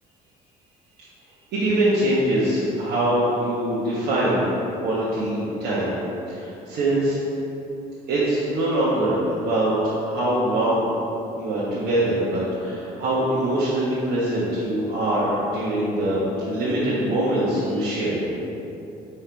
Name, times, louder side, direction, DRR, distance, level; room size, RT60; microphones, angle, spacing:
voice 1, 1.5-4.5 4.8-6.0 6.3-7.2 8.1-9.8 10.0-10.9 11.3-18.2, right 1 dB, 75° right, -9 dB, 1.3 m, -23 dB
5.4 x 4.5 x 4.5 m, 2.9 s
cardioid pair, 110°, 17 cm